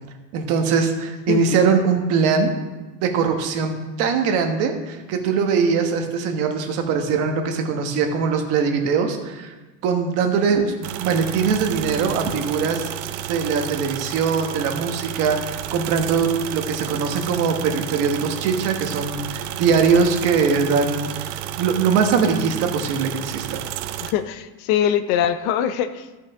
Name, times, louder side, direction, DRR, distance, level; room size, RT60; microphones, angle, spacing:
voice 1, 0.3-2.5 3.0-9.5 9.8-12.9 13.3-23.6, right 5 dB, 50° right, 5 dB, 1.2 m, -21 dB
voice 2, 1.3-1.9 24.0-26.2, left 9 dB, 55° left, 11 dB, 0.5 m, -23 dB
sound 1, 10.8-24.1, right 12 dB, 75° right, 0.6 m, -31 dB
14.0 x 5.9 x 3.5 m, 1.2 s
cardioid pair, 175°, 32 cm